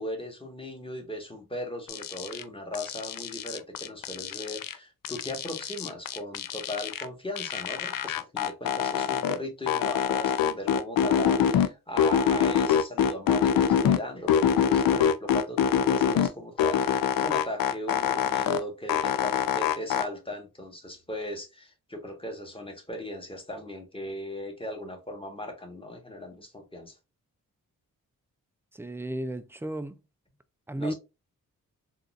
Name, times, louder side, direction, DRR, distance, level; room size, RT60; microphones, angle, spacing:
voice 1, 0.0-26.9 30.8-30.9, left 1 dB, 15° left, 1.3 m, -38 dB
sound 1, 1.9-2.4 2.7-4.7 5.0-7.1 7.4-9.4 9.7-11.7 12.0-14.0 14.3-16.3 16.6-18.6 18.9-20.0, left 8 dB, 70° left, 0.5 m, -25 dB
voice 2, 28.8-30.0 30.7-30.9, right 1 dB, 5° right, 0.3 m, -33 dB
3.8 x 2.5 x 2.4 m
cardioid pair, 50°, 36 cm